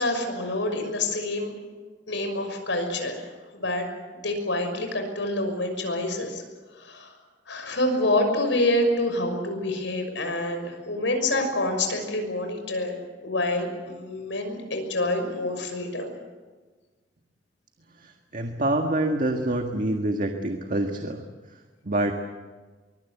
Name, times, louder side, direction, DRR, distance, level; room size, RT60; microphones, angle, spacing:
voice 1, 0.0-1.5 2.1-3.2 3.5-3.8 4.2-6.4 6.7-7.1 7.5-13.0 13.2-16.1, left 1 dB, 80° left, 5 dB, 6.2 m, -27 dB
voice 2, 17.9-21.2 21.8-22.1, right 1 dB, 45° right, 4 dB, 1.7 m, -26 dB
23.5 x 23.0 x 8.3 m, 1.3 s
head